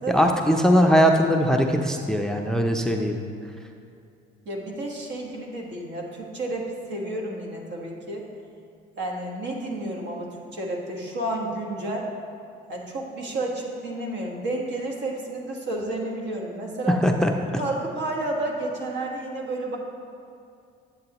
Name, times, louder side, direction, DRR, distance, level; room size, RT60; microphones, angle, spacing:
voice 1, 0.1-3.2 16.9-17.3, equal, 5° left, 4 dB, 0.5 m, -20 dB
voice 2, 4.4-8.2 9.0-12.1 12.7-17.0 17.6-19.8, right 1 dB, 60° right, 0 dB, 1.4 m, -31 dB
8.7 x 7.8 x 2.9 m, 2.5 s
supercardioid pair, 80°, 21 cm